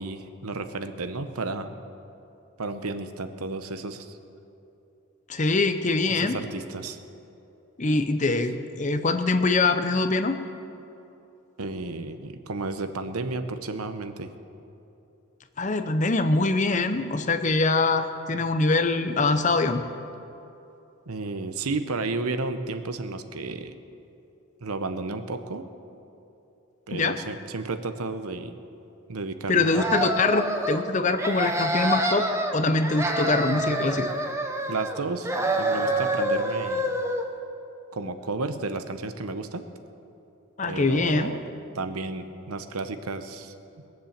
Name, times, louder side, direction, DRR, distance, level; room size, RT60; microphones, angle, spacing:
voice 1, 0.0-1.8 2.6-4.2 6.1-7.0 11.6-14.3 21.1-23.7 24.6-25.7 26.9-28.5 29.1-29.9 34.7-36.8 37.9-39.6 40.6-41.4 41.7-43.5, right 3 dB, 85° right, 9 dB, 0.9 m, -32 dB
voice 2, 5.3-6.4 7.8-10.4 15.6-19.8 26.9-27.2 29.5-32.3 32.5-34.1 40.6-41.3, left 3 dB, 35° left, 9 dB, 0.7 m, -23 dB
sound 1, 29.6-30.8 31.2-32.5 32.8-35.0 35.2-37.2, right 1 dB, 10° right, 0.8 m, -27 dB
20.5 x 7.5 x 7.3 m, 2.9 s
head